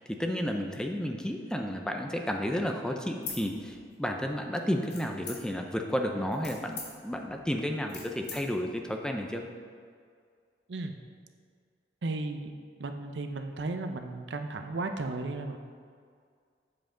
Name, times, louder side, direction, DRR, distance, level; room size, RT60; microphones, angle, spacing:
voice 1, 0.0-9.4, equal, 5° left, 3 dB, 0.5 m, -32 dB
sound 1, 3.2-4.2 4.9-5.7 6.2-8.4, left 4 dB, 80° left, 2.0 m, -42 dB
voice 2, 12.0-12.5 12.8-15.6, right 2 dB, 85° right, 6 dB, 0.6 m, -34 dB
7.8 x 7.5 x 3.8 m, 2.1 s
head